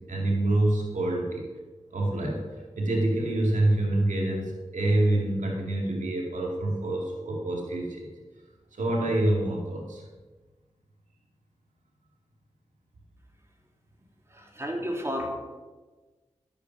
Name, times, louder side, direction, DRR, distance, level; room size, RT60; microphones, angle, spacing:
voice 1, 0.0-1.4 1.9-2.4 2.8-8.1 8.7-10.0, right 1 dB, 85° right, -1 dB, 2.3 m, -26 dB
voice 2, 14.3-15.3, equal, 20° right, 0 dB, 3.2 m, -32 dB
12.5 x 8.6 x 6.0 m, 1.3 s
cardioid pair, 40°, 13 cm